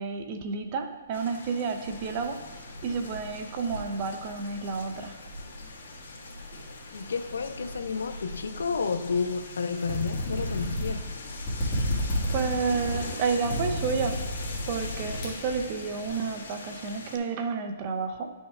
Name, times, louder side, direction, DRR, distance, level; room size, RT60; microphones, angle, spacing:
voice 1, 0.0-2.4 2.8-5.1 12.3-14.2 14.7-18.3, right 5 dB, 30° right, 6 dB, 0.5 m, -30 dB
sound 1, 1.1-17.2, left 3 dB, 70° left, 1.4 m, -42 dB
Keys jangling, 1.8-12.3, equal, 65° right, 2.1 m, -46 dB
voice 2, 6.9-11.1, left 5 dB, 85° left, 11 dB, 0.4 m, -31 dB
sound 2, 9.8-16.0, equal, 25° left, 1.6 m, -31 dB
9.6 x 5.3 x 2.3 m, 1.3 s
hypercardioid pair, 160°, 0 cm